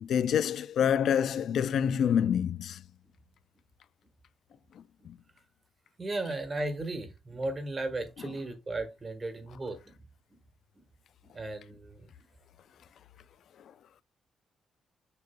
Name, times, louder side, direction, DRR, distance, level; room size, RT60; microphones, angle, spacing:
voice 1, 0.0-2.8 4.8-5.2 8.2-8.3, left 8 dB, 70° left, 0.3 m, -27 dB
voice 2, 6.0-9.8 11.3-12.1, right 2 dB, 30° right, 1.3 m, -35 dB
6.7 x 6.5 x 2.2 m
cardioid pair, 110°, 0 cm